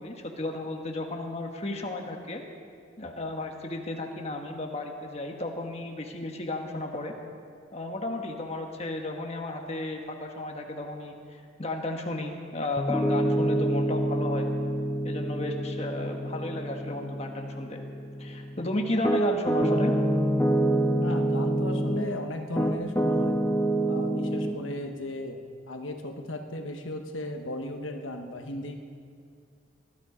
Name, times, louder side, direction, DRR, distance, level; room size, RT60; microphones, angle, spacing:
voice 1, 0.0-2.4 3.0-7.1 7.7-11.2 11.6-14.5 15.0-17.8 18.2-19.9, left 2 dB, 30° left, 2 dB, 1.2 m, -33 dB
Piano, 12.8-22.1 22.6-24.6, right 1 dB, 10° left, 0.7 m, -27 dB
voice 2, 21.0-23.4 23.8-25.4 25.7-28.8, left 1 dB, 75° left, 4 dB, 1.1 m, -36 dB
20.0 x 12.5 x 5.0 m, 2.3 s
head